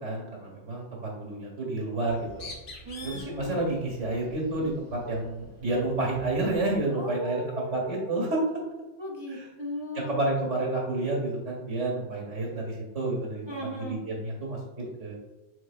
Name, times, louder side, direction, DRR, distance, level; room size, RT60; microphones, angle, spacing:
voice 1, 0.0-2.5 3.0-8.4 9.3-9.5 9.9-13.4 13.8-15.1, right 2 dB, 80° right, -2 dB, 1.9 m, -30 dB
Bird, 2.0-6.9, left 2 dB, 50° left, 1.0 m, -47 dB
voice 2, 2.9-3.6 7.0-8.3 9.0-10.1 13.5-14.0, equal, 45° right, -3 dB, 0.3 m, -37 dB
4.5 x 4.4 x 2.4 m, 1.1 s
omnidirectional pair, 1.2 m